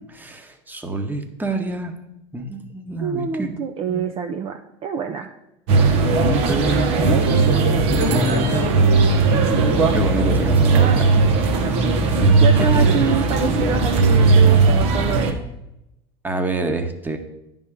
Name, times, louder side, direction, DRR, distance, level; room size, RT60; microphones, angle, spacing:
voice 1, 0.1-2.0 2.3-3.5 3.9-4.1 6.1-8.8 9.2-11.8 12.7-12.9 16.2-17.2, right 2 dB, 10° right, 5 dB, 1.1 m, -27 dB
voice 2, 3.0-5.3 11.6-11.9 12.2-15.4, right 7 dB, 40° right, 5 dB, 0.6 m, -26 dB
sound 1, 5.7-15.3, right 3 dB, 65° right, 1.2 m, -17 dB
9.8 x 3.6 x 6.7 m, 0.89 s
hypercardioid pair, 95°, 15 cm